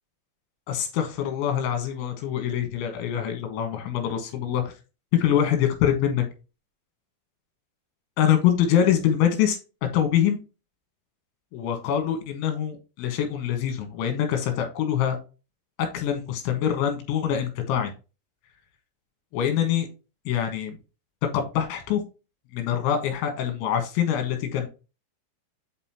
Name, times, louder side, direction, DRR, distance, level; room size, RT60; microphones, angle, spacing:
voice 1, 0.7-4.7 5.1-6.2 8.2-9.6 9.9-10.4 11.5-15.2 15.9-17.9 19.3-19.9 20.3-20.8 21.3-22.0 22.5-24.7, left 9 dB, 75° left, 6 dB, 3.8 m, -24 dB
8.0 x 5.4 x 2.8 m, 0.30 s
omnidirectional pair, 5.6 m